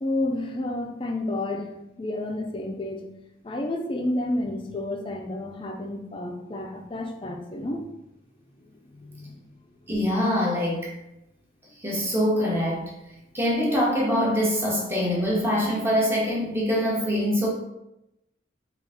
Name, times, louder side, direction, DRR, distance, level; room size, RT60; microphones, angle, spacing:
voice 1, 0.0-1.7 2.0-3.0 3.4-7.8 8.6-9.4, left 1 dB, 30° left, 4 dB, 0.4 m, -30 dB
voice 2, 9.9-10.9 11.8-12.9 13.3-17.5, equal, 15° right, -4 dB, 0.8 m, -24 dB
3.8 x 2.4 x 3.5 m, 0.90 s
head